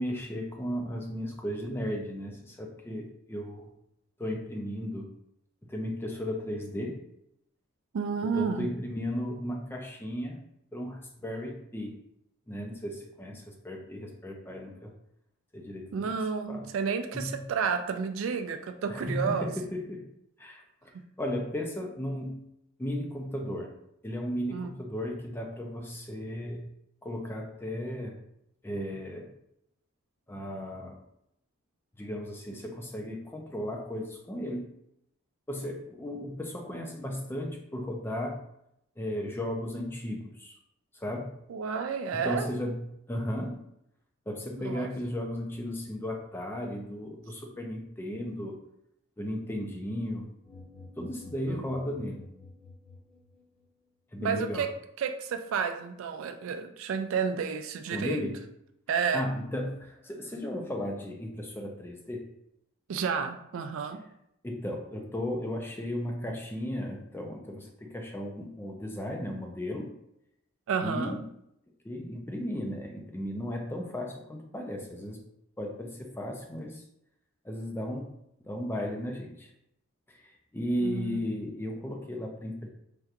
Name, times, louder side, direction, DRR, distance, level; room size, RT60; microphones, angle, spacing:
voice 1, 0.0-3.7 4.2-5.1 5.6-7.0 8.2-10.4 10.7-12.0 12.5-14.9 15.5-16.1 16.5-16.7 17.1-17.4 18.9-20.1 20.4-20.9 21.2-22.4 22.8-23.7 24.0-26.7 27.0-28.2 28.6-29.3 30.3-31.0 32.0-34.7 35.5-38.4 39.0-40.6 40.9-41.3 42.1-43.6 44.3-48.6 49.2-50.3 51.0-52.3 54.1-54.7 57.9-58.4 59.1-62.3 64.4-69.9 70.8-71.2 71.8-75.2 75.6-76.8 77.4-78.1 78.4-79.5 80.1-82.7, equal, 10° left, 1 dB, 0.4 m, -35 dB
voice 2, 7.9-8.7 15.9-19.5 24.5-24.7 41.5-42.5 44.6-44.9 51.5-51.6 54.2-54.7 55.0-58.2 58.9-59.2 62.9-64.0 70.7-71.2 80.8-81.2, right 6 dB, 70° right, 8 dB, 0.3 m, -31 dB
sound 1, 50.4-53.7, left 3 dB, 45° left, 0.7 m, -50 dB
3.3 x 2.8 x 2.4 m, 0.77 s
head